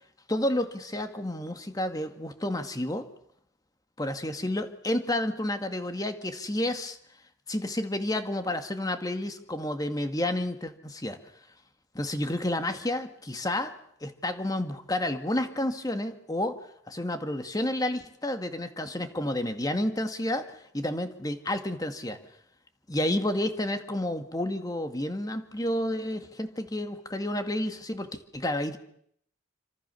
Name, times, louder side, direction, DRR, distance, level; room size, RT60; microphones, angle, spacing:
voice 1, 0.3-3.1 4.0-7.0 7.5-11.2 11.9-13.7 14.0-16.6 16.9-22.2 22.9-28.8, left 1 dB, 20° left, 8 dB, 1.9 m, -30 dB
27.0 x 26.0 x 7.0 m, 0.71 s
head